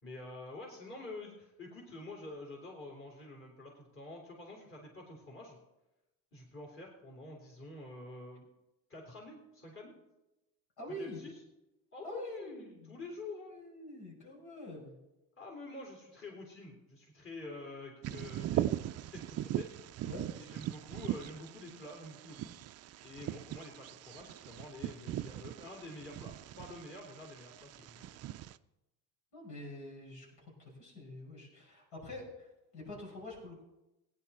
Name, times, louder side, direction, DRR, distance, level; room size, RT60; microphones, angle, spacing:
voice 1, 0.0-5.6 6.3-8.4 8.9-9.9 11.0-11.3 11.9-13.5 15.4-18.7 19.1-19.7 20.4-22.6 23.0-28.1, left 2 dB, 30° left, -2 dB, 3.5 m, -48 dB
voice 2, 10.8-11.2 12.0-13.0 13.5-15.0 20.0-20.3 29.3-30.3 30.6-33.6, left 1 dB, 75° left, -2 dB, 5.8 m, -46 dB
Bird vocalization bird call bird song, 18.0-28.5, right 13 dB, 40° right, 0.4 m, -40 dB
16.5 x 10.0 x 4.2 m, 0.96 s
supercardioid pair, 100°, 41 cm